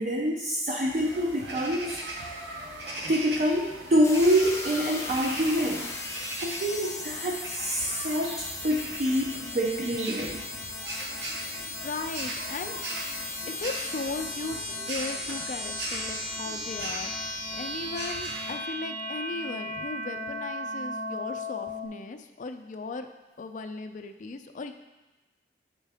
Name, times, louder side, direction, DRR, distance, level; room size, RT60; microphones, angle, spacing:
voice 1, 0.0-2.0 3.0-5.8 6.4-10.4, equal, 45° right, -1 dB, 0.5 m, -26 dB
sound 1, 0.8-18.5, right 1 dB, 75° right, 1.0 m, -39 dB
sound 2, 4.0-21.9, left 2 dB, 15° left, 0.7 m, -36 dB
voice 2, 11.8-12.8 13.4-23.1 23.4-24.7, left 3 dB, 45° left, 8 dB, 0.4 m, -37 dB
7.3 x 4.5 x 3.4 m, 1.1 s
head